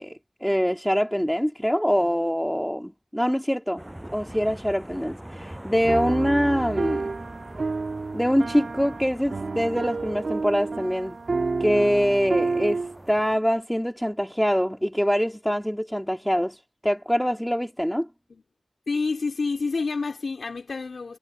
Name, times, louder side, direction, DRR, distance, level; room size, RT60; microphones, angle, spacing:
voice 1, 0.0-3.8 4.1-7.1 8.1-11.2 11.6-12.8 13.1-16.6 16.8-18.1, equal, ahead, 2.4 m, -24 dB
sound 1, 3.8-13.4, right 1 dB, 15° right, 6.2 m, -43 dB
sound 2, 5.8-13.2, right 3 dB, 65° right, 2.1 m, -29 dB
voice 2, 18.9-21.2, left 4 dB, 75° left, 2.9 m, -28 dB
wide cardioid pair, 65°, 0 cm